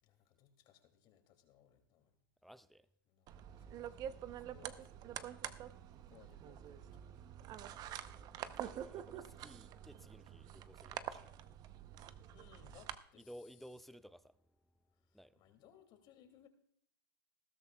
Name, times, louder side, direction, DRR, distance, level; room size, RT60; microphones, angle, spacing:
voice 1, 0.0-2.1 3.1-5.2 5.5-5.8 6.1-7.2 12.3-13.3 14.8-16.5, left 10 dB, 40° left, 2.4 m, -65 dB
voice 2, 2.4-2.9 8.5-11.4 13.1-14.4 15.1-15.4, equal, ahead, 0.4 m, -56 dB
sound 1, 3.3-13.0, right 10 dB, 30° right, 0.7 m, -47 dB
20.0 x 12.5 x 2.3 m
hypercardioid pair, 120°, 12 cm